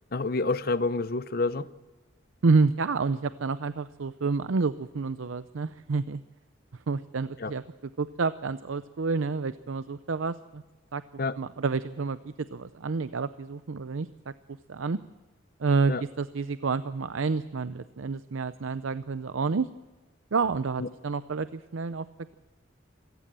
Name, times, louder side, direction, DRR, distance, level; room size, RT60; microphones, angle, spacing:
voice 1, 0.1-1.7 7.4-7.5 11.2-11.4 15.9-16.0 20.8-20.9, left 3 dB, 50° left, 0.7 m, -28 dB
voice 2, 2.4-6.2 6.9-10.6 10.9-11.0 11.4-14.1 14.7-15.0 15.6-19.7 20.3-22.1, right 4 dB, 85° right, 0.6 m, -29 dB
26.5 x 15.5 x 7.5 m
head